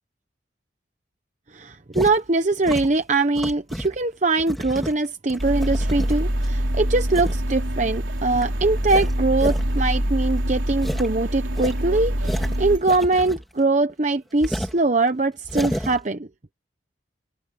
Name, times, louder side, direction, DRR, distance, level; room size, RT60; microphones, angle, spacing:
voice 1, 1.5-16.3, right 3 dB, 40° right, 0.9 m, -22 dB
sound 1, 1.9-2.1 2.6-4.0 4.4-6.4 7.1-7.4 7.8-7.9 8.3-8.4 8.8-9.6 9.9-10.0 10.3-10.4 10.8-11.1 11.5-13.6 13.9-14.0 14.4-14.8 15.4-16.0, equal, ahead, 3.0 m, -31 dB
sound 2, 5.4-12.8, equal, 90° right, 4.0 m, -25 dB
head